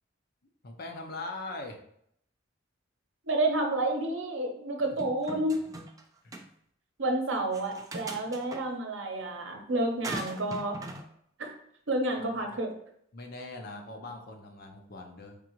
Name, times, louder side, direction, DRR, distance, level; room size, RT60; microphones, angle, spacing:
voice 1, 0.6-1.8 4.8-4.9 6.2-6.3 12.2-12.6 13.1-15.4, left 2 dB, 50° left, 3 dB, 0.7 m, -41 dB
voice 2, 3.2-5.6 7.0-10.8 11.4-11.5 11.9-12.7, right 2 dB, 70° right, 3 dB, 0.8 m, -30 dB
sound 1, 5.0-6.0 6.3-6.4 7.5-8.6 10.0-11.0, right 2 dB, 20° right, 0.4 m, -40 dB
3.7 x 3.7 x 3.0 m, 0.70 s
head